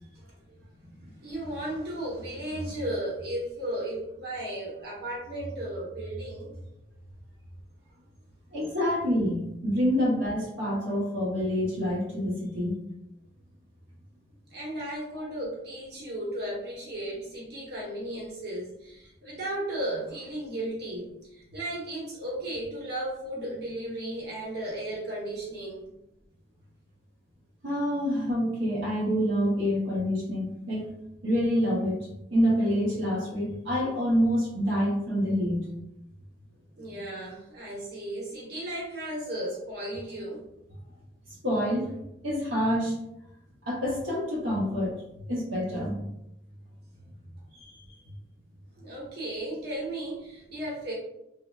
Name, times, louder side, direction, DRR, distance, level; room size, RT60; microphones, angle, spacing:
voice 1, 0.0-6.5 14.5-25.9 36.8-40.5 44.3-44.5 48.8-50.9, right 1 dB, 55° right, -5 dB, 0.9 m, -35 dB
voice 2, 8.5-12.8 27.6-30.9 31.2-35.7 41.4-41.9 42.2-43.0 43.7-45.0 45.3-46.0 47.5-47.8, equal, 85° right, -5 dB, 0.8 m, -27 dB
3.2 x 2.1 x 2.3 m, 0.83 s
head